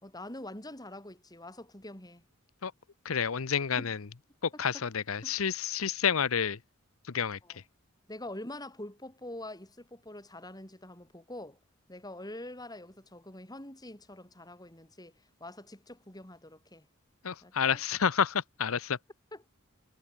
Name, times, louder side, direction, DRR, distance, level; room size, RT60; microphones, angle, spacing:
voice 1, 0.0-2.2 3.7-3.9 4.5-4.9 5.2-5.4 7.4-7.6 8.1-11.6 11.9-16.9 17.4-17.8 19.3-19.5, left 1 dB, 20° left, 5.4 m, -45 dB
voice 2, 3.0-4.0 4.4-6.6 7.1-7.4 17.2-19.0, left 7 dB, 80° left, 0.8 m, -29 dB
head